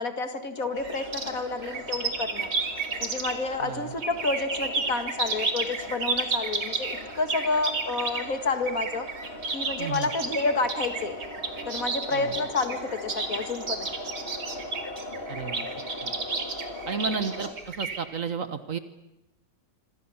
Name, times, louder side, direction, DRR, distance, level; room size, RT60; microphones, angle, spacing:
voice 1, 0.0-2.5 3.0-9.1 9.5-11.2 11.7-13.9, left 3 dB, 50° left, 8 dB, 2.3 m, -29 dB
sound 1, 0.6-17.5, left 1 dB, 35° left, 3.1 m, -40 dB
sound 2, 0.8-3.6 4.0-18.0, right 4 dB, 70° right, 3.0 m, -32 dB
voice 2, 3.6-3.9 9.8-10.1 12.1-12.3 15.3-15.7 16.0-16.1 16.9-18.8, right 6 dB, 50° right, 10 dB, 1.6 m, -32 dB
27.0 x 25.0 x 7.2 m, 0.89 s
omnidirectional pair, 1.8 m